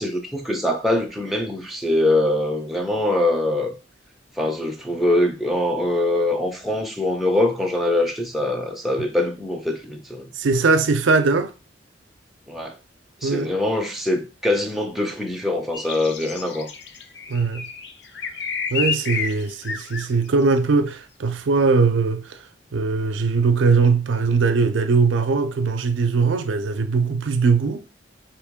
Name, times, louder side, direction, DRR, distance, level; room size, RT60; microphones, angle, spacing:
voice 1, 0.0-3.7 4.4-10.3 12.5-12.7 13.2-16.7, left 1 dB, ahead, 0.5 m, -23 dB
voice 2, 10.3-11.5 13.2-13.5 17.3-17.6 18.7-22.4 22.7-27.8, right 4 dB, 80° right, 0.5 m, -20 dB
sound 1, 15.7-20.1, left 6 dB, 60° left, 0.5 m, -30 dB
4.3 x 3.0 x 3.5 m
head